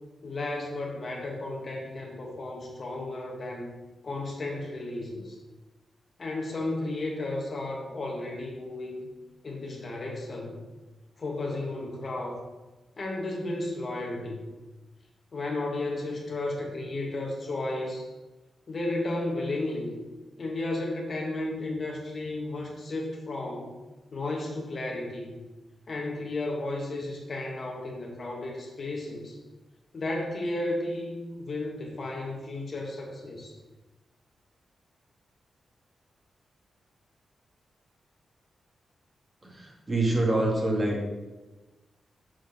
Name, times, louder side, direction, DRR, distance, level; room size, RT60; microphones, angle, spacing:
voice 1, 0.2-3.7 4.0-5.4 6.2-9.1 9.4-10.6 11.2-12.4 13.0-14.5 15.3-18.1 18.7-20.0 20.4-23.8 24.1-25.4 25.9-29.4 29.9-33.5, left 2 dB, 45° left, 0 dB, 1.5 m, -33 dB
voice 2, 39.4-41.1, right 2 dB, 25° right, -2 dB, 2.1 m, -26 dB
6.3 x 4.9 x 6.4 m, 1.1 s
wide cardioid pair, 120°, 0 cm